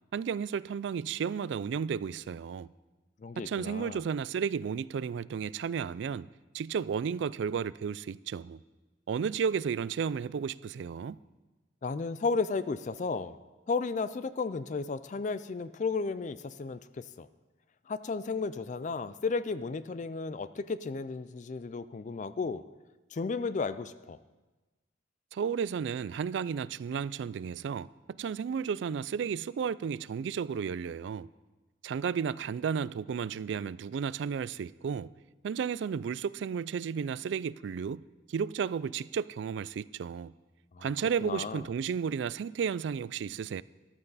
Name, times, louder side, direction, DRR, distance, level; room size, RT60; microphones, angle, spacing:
voice 1, 0.1-2.7 3.4-6.3 6.5-8.6 9.1-11.2 25.3-31.3 31.8-35.1 35.4-38.0 38.3-40.3 40.8-43.6, right 6 dB, 65° right, 0.3 m, -33 dB
voice 2, 3.2-4.0 11.8-13.4 13.7-17.3 17.9-22.6 23.1-24.2 40.7-40.9 41.2-41.6, left 4 dB, 40° left, 0.4 m, -33 dB
14.0 x 12.0 x 4.1 m
head